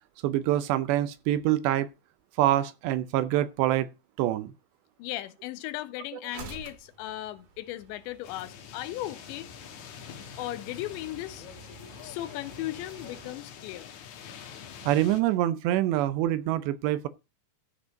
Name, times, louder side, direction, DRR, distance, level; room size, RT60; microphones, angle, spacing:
voice 1, 0.2-1.9 2.4-3.9 4.2-4.5 14.9-17.1, right 13 dB, 80° right, 2.8 m, -25 dB
voice 2, 5.0-9.5 10.4-11.5 12.0-13.9, left 15 dB, 90° left, 3.1 m, -37 dB
sound 1, 6.3-13.3, right 5 dB, 55° right, 3.8 m, -50 dB
sound 2, 8.2-15.2, left 8 dB, 65° left, 1.9 m, -45 dB
13.5 x 5.1 x 5.8 m
omnidirectional pair, 5.0 m